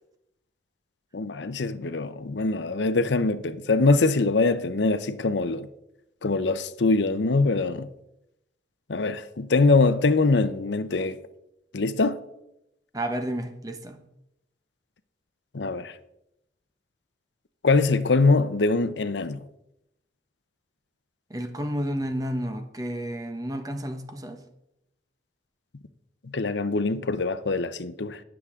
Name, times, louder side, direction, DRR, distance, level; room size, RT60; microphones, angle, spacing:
voice 1, 1.1-5.7 6.2-7.9 8.9-11.2 11.7-12.2 15.5-15.9 17.6-19.4 26.3-28.2, left 3 dB, 80° left, 0.7 m, -23 dB
voice 2, 12.9-14.0 21.3-24.4, equal, 20° right, 1.0 m, -31 dB
19.5 x 7.2 x 3.7 m
head